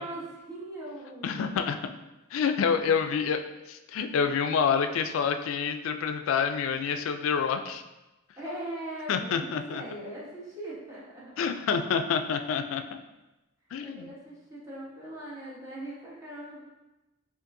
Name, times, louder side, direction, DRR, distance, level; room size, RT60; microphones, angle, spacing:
voice 1, 0.0-1.4 2.7-2.9 8.4-11.4 13.8-16.6, right 1 dB, 15° right, -7 dB, 1.0 m, -40 dB
voice 2, 1.2-1.8 2.3-3.4 3.7-7.8 9.1-9.8 11.4-13.0 13.7-14.1, left 6 dB, 90° left, 8 dB, 0.3 m, -27 dB
5.3 x 2.5 x 2.5 m, 1.0 s
head